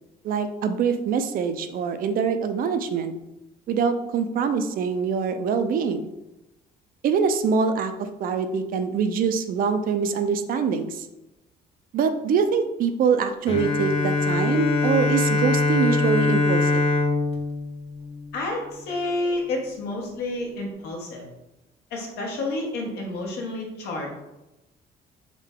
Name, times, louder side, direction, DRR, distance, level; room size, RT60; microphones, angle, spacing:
voice 1, 0.2-3.1 3.7-6.1 7.0-11.1 11.9-16.9, right 6 dB, 60° right, 9 dB, 0.5 m, -24 dB
Bowed string instrument, 13.5-19.0, left 3 dB, 35° left, 0.6 m, -23 dB
voice 2, 18.3-21.2 21.9-24.1, left 2 dB, 80° left, 0 dB, 1.2 m, -29 dB
3.7 x 3.2 x 3.6 m, 0.95 s
cardioid pair, 110°, 17 cm